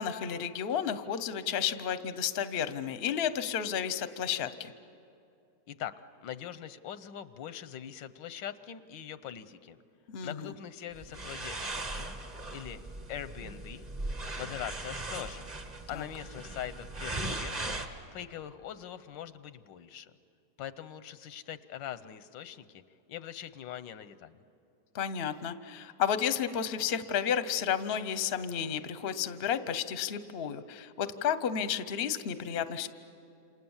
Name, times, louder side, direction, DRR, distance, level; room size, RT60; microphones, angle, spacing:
voice 1, 0.0-4.7 10.1-10.5 15.9-16.1 24.9-32.9, left 8 dB, 45° left, 12 dB, 0.8 m, -32 dB
voice 2, 6.2-9.8 10.2-12.2 12.5-12.8 13.1-13.9 14.4-15.5 15.9-17.8 18.1-20.1 20.6-22.8 23.1-24.4, left 10 dB, 85° left, 13 dB, 1.5 m, -42 dB
sound 1, 10.9-17.9, right 2 dB, 25° right, 1.3 m, -38 dB
28.0 x 27.0 x 7.2 m, 2.6 s
omnidirectional pair, 1.9 m